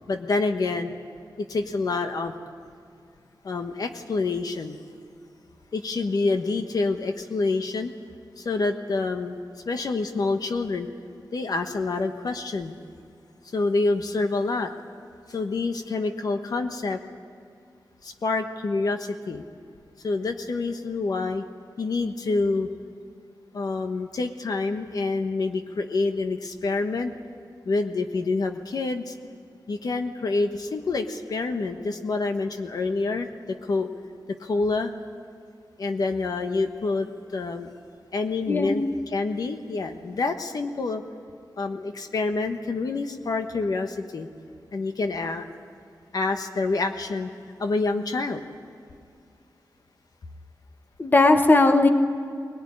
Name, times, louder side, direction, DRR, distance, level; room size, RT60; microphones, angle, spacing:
voice 1, 0.1-0.9 1.4-2.4 3.4-4.8 5.7-7.9 8.4-9.4 9.7-10.9 11.3-12.7 13.5-14.7 15.3-17.0 18.0-19.4 20.0-21.4 21.8-22.7 23.5-27.1 27.7-29.1 29.7-33.9 34.4-34.9 35.8-37.7 38.1-41.0 41.6-44.3 44.7-45.4 46.1-47.3 47.6-48.4, left 3 dB, 60° left, 6 dB, 1.2 m, -27 dB
voice 2, 38.5-38.9 51.0-51.9, left 2 dB, 25° left, 6 dB, 1.3 m, -18 dB
21.0 x 18.5 x 9.9 m, 2.3 s
wide cardioid pair, 160°, 7 cm